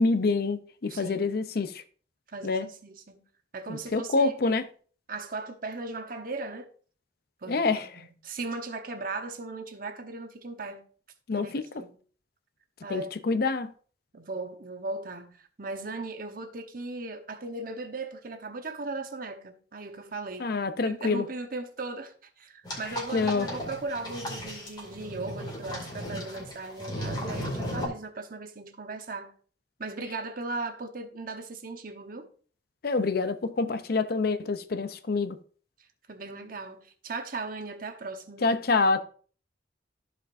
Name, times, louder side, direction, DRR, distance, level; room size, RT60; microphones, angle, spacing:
voice 1, 0.0-1.8 2.4-2.7 3.7-4.6 7.5-7.9 11.3-11.6 12.9-13.7 20.4-21.2 23.1-23.5 32.8-35.4 38.4-39.0, left 3 dB, 55° left, 0.6 m, -26 dB
voice 2, 0.9-1.3 2.3-3.2 3.5-4.6 5.1-6.7 7.4-10.8 11.3-12.0 12.8-13.1 14.1-20.6 20.8-29.3 29.8-32.3 36.1-38.5, right 3 dB, 50° right, 1.0 m, -38 dB
sound 1, 22.7-27.9, equal, 25° left, 2.4 m, -36 dB
14.5 x 5.0 x 2.6 m
head